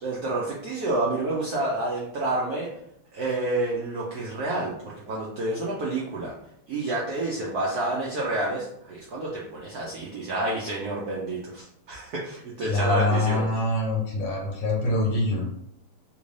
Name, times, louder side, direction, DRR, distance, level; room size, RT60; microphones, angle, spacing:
voice 1, 0.0-2.7 3.1-6.3 6.7-13.4, right 2 dB, 70° right, -4 dB, 0.9 m, -29 dB
voice 2, 12.6-15.4, left 2 dB, 65° left, -1 dB, 1.4 m, -25 dB
3.4 x 2.6 x 3.1 m, 0.75 s
omnidirectional pair, 2.3 m